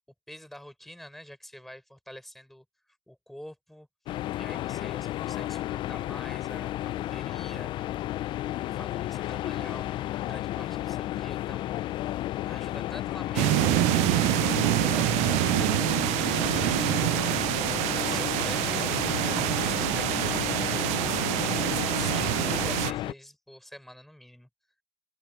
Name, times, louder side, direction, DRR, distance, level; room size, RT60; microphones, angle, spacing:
voice 1, 0.3-3.9 4.3-7.7 8.2-11.8 12.4-15.9 16.4-17.2 18.0-21.4 21.9-24.5, equal, ahead, 6.3 m, -46 dB
sound 1, 4.1-23.1, left 14 dB, 40° left, 0.4 m, -32 dB
sound 2, 13.3-22.9, right 23 dB, 60° right, 0.4 m, -26 dB
cardioid pair, 150°, 13 cm